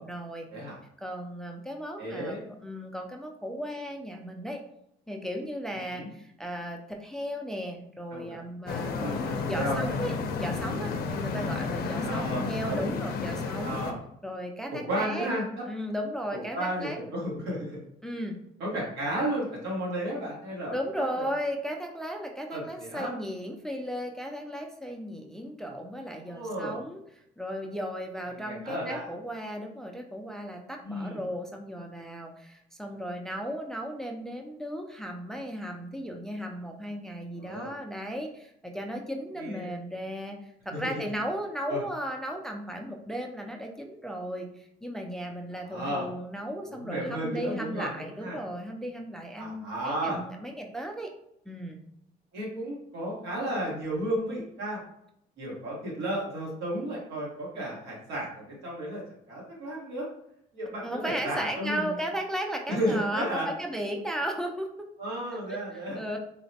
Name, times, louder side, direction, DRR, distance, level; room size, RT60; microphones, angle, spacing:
voice 1, 0.0-0.5 1.0-2.4 2.6-4.6 5.1-10.1 10.4-13.8 14.2-15.3 15.7-17.0 18.0-18.4 20.7-27.0 27.4-51.1 51.5-51.8 60.8-64.9 65.5-66.2, equal, 5° left, 2 dB, 0.3 m, -35 dB
voice 2, 2.0-2.5 5.9-6.1 8.1-8.4 9.0-9.2 9.5-10.0 12.0-13.0 13.6-14.0 14.7-15.4 16.3-17.8 18.6-21.2 22.5-23.1 26.2-26.8 28.4-29.0 30.8-31.2 37.3-37.7 39.4-39.7 40.7-41.0 41.7-41.8 45.6-46.1 46.7-48.4 49.4-50.2 52.3-54.8 55.4-59.0 59.3-60.1 60.5-62.0 62.7-63.5 65.0-66.0, right 1 dB, 85° right, -4 dB, 1.4 m, -33 dB
sound 1, 8.7-13.9, left 4 dB, 65° left, 0.5 m, -32 dB
3.8 x 2.1 x 2.7 m, 0.75 s
cardioid pair, 110°, 17 cm